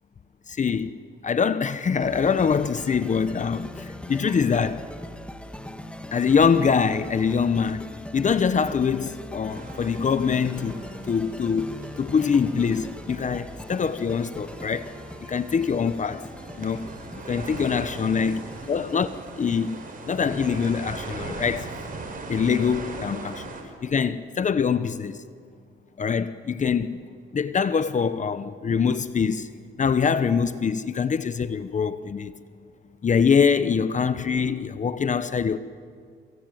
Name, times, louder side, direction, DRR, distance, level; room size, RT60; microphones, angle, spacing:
voice 1, 0.5-0.9 1.2-4.9 6.1-14.9 15.3-16.3 16.6-16.9 17.3-18.4 18.7-19.1 19.4-19.8 20.1-21.7 22.3-23.5 23.8-25.2 26.0-27.0 27.3-29.5 29.8-32.3 33.0-35.6, left 6 dB, 40° left, 1.0 m, -24 dB
sound 1, 2.0-21.3, left 1 dB, 5° left, 1.9 m, -40 dB
sound 2, 9.5-23.6, right 3 dB, 45° right, 5.8 m, -40 dB
25.5 x 22.5 x 9.2 m
cardioid pair, 90°, 20 cm